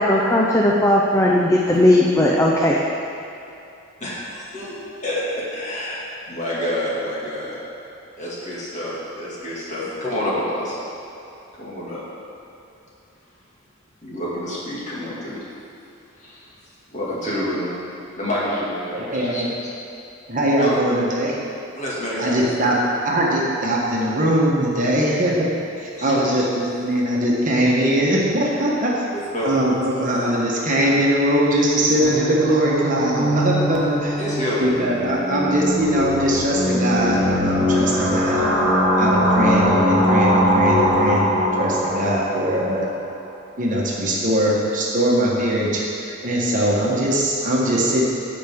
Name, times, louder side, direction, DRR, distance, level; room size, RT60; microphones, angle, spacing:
voice 1, 0.0-2.8, left 1 dB, 15° left, -2 dB, 0.5 m, -17 dB
voice 2, 4.0-4.7 5.0-6.0 6.3-7.6 8.2-10.8 11.6-12.0 14.0-15.4 16.2-16.5 16.9-17.8 18.2-19.5 20.5-21.0 21.8-22.7 25.9-26.2 29.1-29.5 29.9-30.1 34.2-34.6, equal, 35° left, -7 dB, 2.1 m, -28 dB
voice 3, 18.9-19.5 20.3-21.4 22.2-22.8 23.0-29.0 29.4-34.2 34.6-38.5 39.0-42.9 43.6-48.0, right 1 dB, 40° right, -4 dB, 1.3 m, -21 dB
sound 1, 32.0-42.8, equal, 15° right, 1.8 m, -21 dB
14.5 x 5.2 x 3.6 m, 2.8 s
head